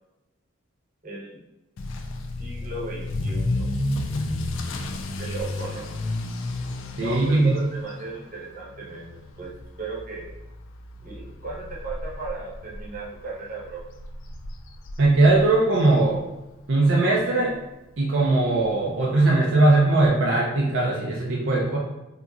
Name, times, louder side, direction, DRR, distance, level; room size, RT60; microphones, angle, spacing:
voice 1, 1.0-1.4 2.4-3.7 5.2-5.9 7.0-9.5 9.8-10.3 11.0-13.8, right 3 dB, 40° right, -5 dB, 0.8 m, -36 dB
Motor vehicle (road) / Accelerating revving vroom, 1.8-16.6 16.9-17.3 17.8-17.9 18.2-18.3 18.6-18.7 20.0-20.1, left 2 dB, 75° left, 0.4 m, -33 dB
voice 2, 7.0-7.5 15.0-16.2 16.7-17.5 18.0-21.8, right 2 dB, 65° right, -3 dB, 0.5 m, -20 dB
3.5 x 2.8 x 2.4 m, 1.0 s
head